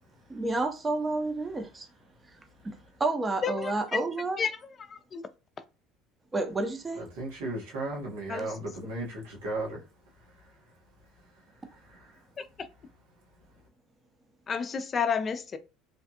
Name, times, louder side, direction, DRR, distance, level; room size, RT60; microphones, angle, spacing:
voice 1, 0.3-1.9 2.6-2.7 3.0-4.4 6.3-7.0, right 2 dB, 20° right, 0.7 m, -30 dB
voice 2, 3.4-4.0 4.4-4.5 4.9-5.2 8.3-8.5 12.4-12.7 14.5-15.6, left 6 dB, 35° left, 0.5 m, -31 dB
voice 3, 7.0-9.8 11.9-12.2, right 2 dB, 85° right, 1.4 m, -35 dB
3.3 x 2.3 x 2.8 m
supercardioid pair, 90°, 0 cm